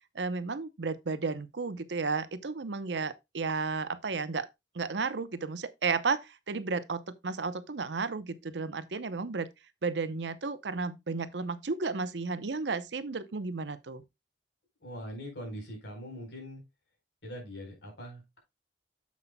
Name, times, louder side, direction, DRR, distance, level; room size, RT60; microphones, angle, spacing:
voice 1, 0.1-4.5 4.7-9.5 9.8-14.0, right 4 dB, 80° right, 0.7 m, -33 dB
voice 2, 14.8-16.6 17.2-18.4, equal, 75° left, 4.1 m, -42 dB
9.8 x 7.4 x 2.2 m
head